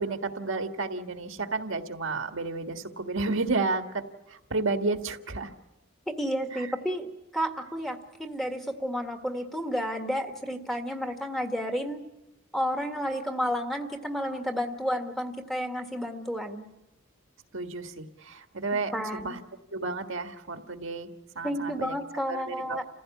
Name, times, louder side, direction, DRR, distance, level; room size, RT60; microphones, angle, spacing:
voice 1, 0.0-5.5 6.5-6.7 17.5-19.4 19.7-21.1 21.4-22.0 22.3-22.8, right 3 dB, 70° right, 6 dB, 1.7 m, -32 dB
voice 2, 6.1-12.0 12.5-16.7 18.9-19.4 21.4-22.8, equal, ahead, 3 dB, 1.8 m, -31 dB
29.0 x 15.5 x 8.5 m, 0.93 s
head